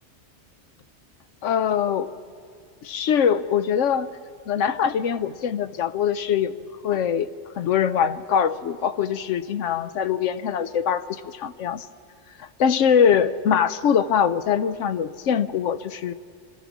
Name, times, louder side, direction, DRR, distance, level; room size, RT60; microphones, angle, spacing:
voice 1, 1.4-2.1 2.8-4.1 4.5-6.5 6.8-7.3 7.6-11.8 12.4-16.1, left 8 dB, 85° left, 13 dB, 1.0 m, -23 dB
25.5 x 14.0 x 7.1 m, 2.3 s
omnidirectional pair, 1.2 m